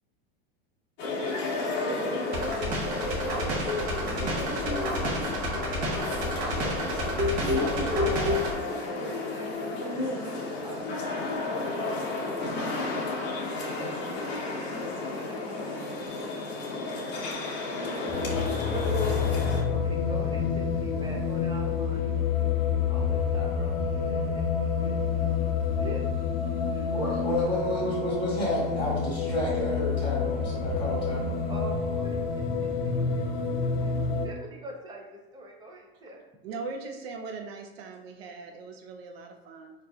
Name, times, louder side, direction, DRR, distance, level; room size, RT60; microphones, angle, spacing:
sound 1, 1.0-19.6, left 2 dB, 35° left, 0.8 m, -32 dB
sound 2, 2.3-8.5, equal, 50° right, 0.8 m, -30 dB
voice 1, 8.9-11.2 12.5-15.4 16.1-16.3 16.6-16.8 17.1-17.5 18.7-19.1 19.7-22.2 22.8-24.5 24.8-25.0 25.8-26.1 26.7-26.9 31.5-33.3 33.6-34.0 34.2-36.2, right 1 dB, 15° right, -1 dB, 0.5 m, -45 dB
sound 3, 18.1-34.3, left 6 dB, 65° left, 0.6 m, -28 dB
voice 2, 26.9-31.5, left 1 dB, 5° left, -8 dB, 1.0 m, -30 dB
voice 3, 36.4-39.7, right 4 dB, 75° right, 3 dB, 0.6 m, -40 dB
4.0 x 2.5 x 2.3 m, 1.0 s
hypercardioid pair, 120°, 31 cm